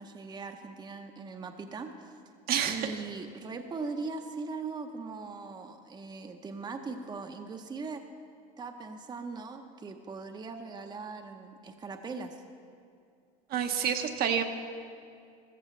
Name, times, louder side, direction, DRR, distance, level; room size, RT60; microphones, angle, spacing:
voice 1, 0.0-2.1 2.6-8.0 8.6-12.4, right 4 dB, 20° right, 5 dB, 0.7 m, -40 dB
voice 2, 2.5-2.9 13.5-14.4, right 8 dB, 50° right, 5 dB, 0.9 m, -28 dB
14.5 x 13.5 x 3.2 m, 2.4 s
supercardioid pair, 105°, 20 cm